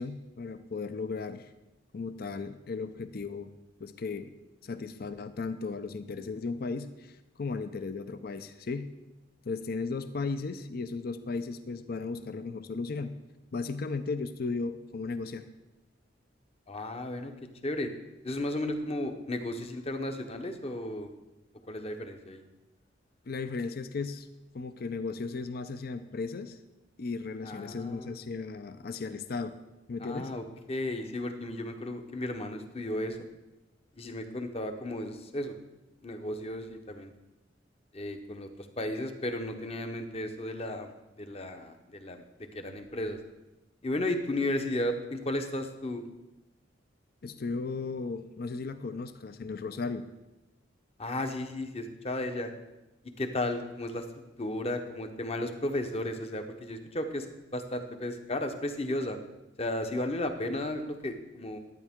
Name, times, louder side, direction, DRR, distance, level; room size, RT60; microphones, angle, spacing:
voice 1, 0.0-1.5 1.9-3.5 3.8-4.3 4.6-8.9 9.5-13.1 13.5-15.4 23.3-24.3 24.5-26.6 27.0-29.6 29.9-30.3 47.2-50.1, left 4 dB, 55° left, 10 dB, 0.5 m, -35 dB
voice 2, 16.7-17.3 17.6-17.9 18.2-21.1 21.7-22.4 27.4-28.1 30.0-33.2 34.0-35.6 36.0-37.1 37.9-38.5 38.8-40.9 41.2-42.2 42.5-43.2 43.8-46.1 51.0-52.5 53.2-54.0 54.4-57.3 57.5-59.2 59.6-61.6, left 1 dB, 35° left, 7 dB, 0.9 m, -34 dB
11.5 x 9.3 x 3.6 m, 1.0 s
head